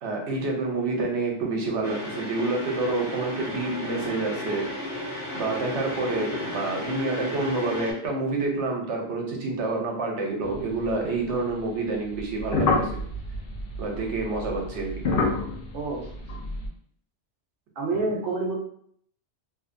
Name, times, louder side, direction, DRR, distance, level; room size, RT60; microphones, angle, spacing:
voice 1, 0.0-4.7 5.3-12.9 13.8-14.9 17.9-18.1, right 3 dB, 80° right, 1 dB, 1.0 m, -28 dB
sound 1, 1.8-7.9, left 1 dB, 50° left, 1.1 m, -34 dB
sound 2, 10.4-11.5 12.1-16.7, left 3 dB, 65° left, 0.7 m, -29 dB
voice 2, 15.7-16.1 17.8-18.5, right 3 dB, 55° right, 0 dB, 0.8 m, -28 dB
2.8 x 2.1 x 2.5 m, 0.63 s
omnidirectional pair, 1.2 m